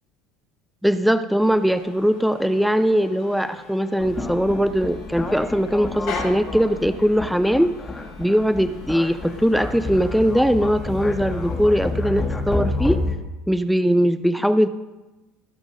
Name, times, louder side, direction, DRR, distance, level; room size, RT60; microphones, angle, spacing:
voice 1, 0.8-7.8 8.2-13.0 13.5-14.7, equal, ahead, 12 dB, 0.6 m, -20 dB
sound 1, 1.4-12.8, left 5 dB, 65° left, 4.7 m, -42 dB
sound 2, 4.0-13.2, left 3 dB, 20° left, 1.8 m, -29 dB
18.0 x 6.1 x 5.2 m, 1.1 s
hypercardioid pair, 75°, 0 cm